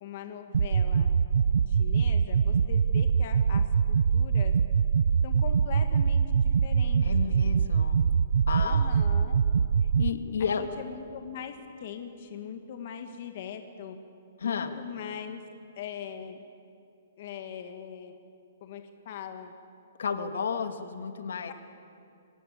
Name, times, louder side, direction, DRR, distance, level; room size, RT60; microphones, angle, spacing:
voice 1, 0.0-1.1 1.7-4.6 5.2-7.0 8.6-9.4 10.4-14.0 14.4-15.4 15.8-16.4 17.2-18.2 18.6-19.5 20.5-20.6 21.5-21.6, left 8 dB, 40° left, 6 dB, 1.6 m, -41 dB
sound 1, 0.5-10.1, right 6 dB, 75° right, 0.5 m, -24 dB
voice 2, 7.0-8.0 8.5-9.0 10.0-10.6 14.4-14.7 20.0-21.5, left 6 dB, 75° left, 7 dB, 2.0 m, -32 dB
24.5 x 19.0 x 8.6 m, 2.5 s
hypercardioid pair, 170°, 0 cm